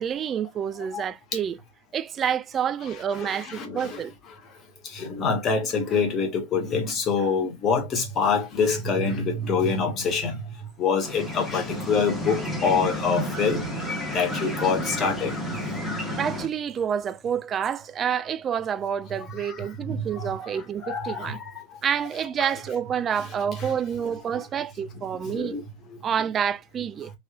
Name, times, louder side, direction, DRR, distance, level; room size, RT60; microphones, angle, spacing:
voice 1, 0.0-1.6 1.9-4.1 16.2-21.4 21.8-25.6 26.0-27.1, right 8 dB, 25° right, 0.3 m, -28 dB
voice 2, 3.2-4.0 4.8-13.7 14.1-15.6 19.4-19.6 19.8-20.3 20.8-21.8 22.4-22.5 23.6-23.7 25.3-25.6 25.9-26.0, left 5 dB, 30° left, 1.2 m, -26 dB
sound 1, 11.0-16.5, equal, 5° left, 1.3 m, -31 dB
3.2 x 2.9 x 2.3 m
figure-of-eight pair, 90°, 0 cm